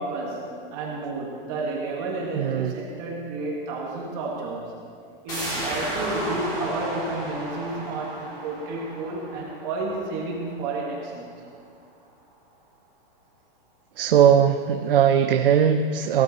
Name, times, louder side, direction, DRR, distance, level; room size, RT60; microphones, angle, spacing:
voice 1, 0.0-4.7 5.2-11.3, right 2 dB, 25° right, -3 dB, 1.7 m, -31 dB
voice 2, 2.3-2.8 14.0-16.2, right 8 dB, 70° right, 6 dB, 0.8 m, -19 dB
sound 1, 5.3-10.8 11.1-11.2, right 1 dB, 15° left, 2.5 m, -34 dB
17.0 x 12.5 x 4.3 m, 2.3 s
supercardioid pair, 180°, 29 cm